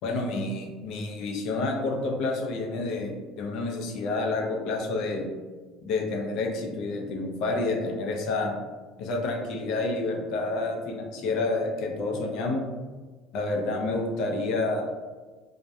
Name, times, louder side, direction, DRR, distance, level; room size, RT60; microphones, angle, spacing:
voice 1, 0.0-5.3 5.8-8.5 9.0-12.6 13.3-14.8, left 2 dB, 65° left, 1 dB, 0.5 m, -29 dB
2.2 x 2.1 x 2.6 m, 1.4 s
supercardioid pair, 115°, 0 cm